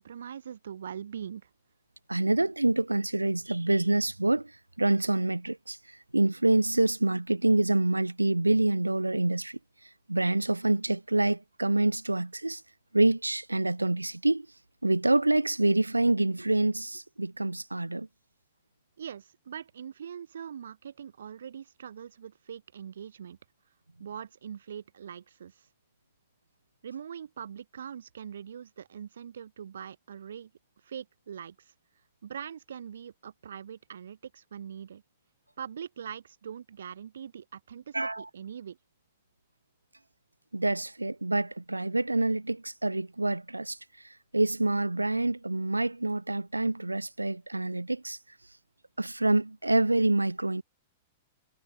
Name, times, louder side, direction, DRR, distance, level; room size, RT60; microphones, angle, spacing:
voice 1, 0.0-1.5 19.0-23.4 24.0-25.7 26.8-30.5 30.8-31.7 32.2-35.0 35.6-38.8, right 8 dB, 70° right, 3.3 m, -42 dB
voice 2, 2.1-4.5 4.8-5.8 6.1-9.6 10.1-12.6 12.9-14.5 14.8-18.1 37.9-38.3 40.5-43.8 44.3-48.2 49.0-50.6, right 2 dB, 90° right, 0.7 m, -26 dB
figure-of-eight pair, 100°, 0 cm